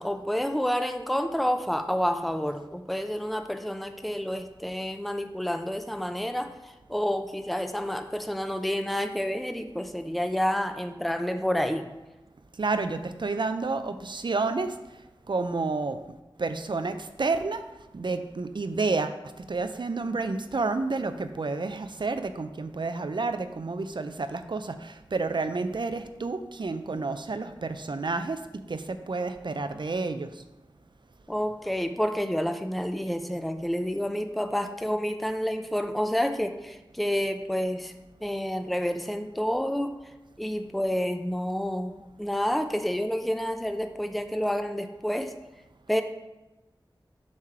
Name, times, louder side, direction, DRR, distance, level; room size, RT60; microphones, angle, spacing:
voice 1, 0.0-11.9 31.3-37.9 38.2-40.0 40.4-45.3 45.9-46.0, equal, ahead, 7 dB, 0.5 m, -29 dB
voice 2, 12.6-14.7 15.3-16.0 16.4-17.6 17.9-28.4 28.7-30.3, right 3 dB, 65° right, 9 dB, 0.5 m, -30 dB
7.3 x 3.2 x 5.7 m, 1.0 s
wide cardioid pair, 50°, 9 cm